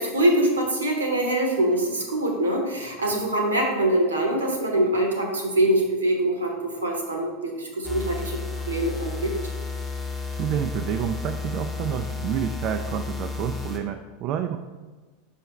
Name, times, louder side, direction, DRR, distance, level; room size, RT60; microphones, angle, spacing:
voice 1, 0.0-8.4 8.7-9.3, right 1 dB, 80° right, 2 dB, 1.2 m, -24 dB
sound 1, 7.8-13.8, left 4 dB, 5° left, 0.9 m, -32 dB
voice 2, 10.3-14.6, right 9 dB, 45° right, 6 dB, 0.3 m, -29 dB
5.5 x 5.4 x 3.1 m, 1.3 s
figure-of-eight pair, 85°, 0 cm